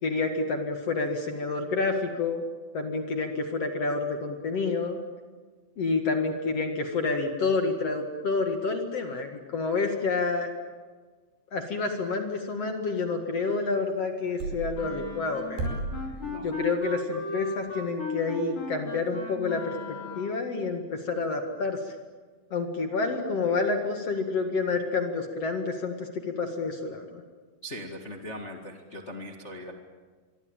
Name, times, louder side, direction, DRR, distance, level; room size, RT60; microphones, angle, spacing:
voice 1, 0.0-2.4 2.7-5.0 5.8-10.5 11.5-15.7 16.4-22.0 22.5-27.2, left 3 dB, 50° left, 5 dB, 2.2 m, -29 dB
sound 1, 14.4-14.7 15.6-16.0, right 3 dB, 75° right, 7.3 m, -31 dB
Wind instrument woodwind instrument, 14.7-20.5, left 4 dB, 30° left, 4.2 m, -37 dB
voice 2, 16.2-16.6 27.6-29.7, left 1 dB, 70° left, 3 dB, 0.6 m, -40 dB
26.0 x 23.5 x 8.9 m, 1.5 s
omnidirectional pair, 4.9 m